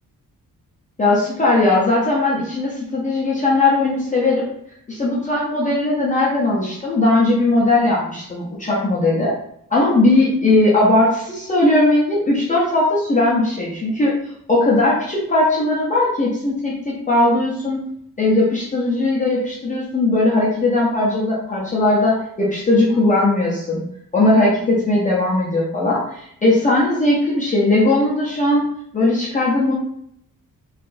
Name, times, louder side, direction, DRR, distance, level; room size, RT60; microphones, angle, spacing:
voice 1, 1.0-4.5 4.9-9.3 9.7-14.2 14.5-17.8 18.2-23.8 24.1-28.7 28.9-29.7, left 2 dB, 20° left, -6 dB, 0.6 m, -18 dB
3.9 x 3.1 x 2.5 m, 0.72 s
wide cardioid pair, 180°, 34 cm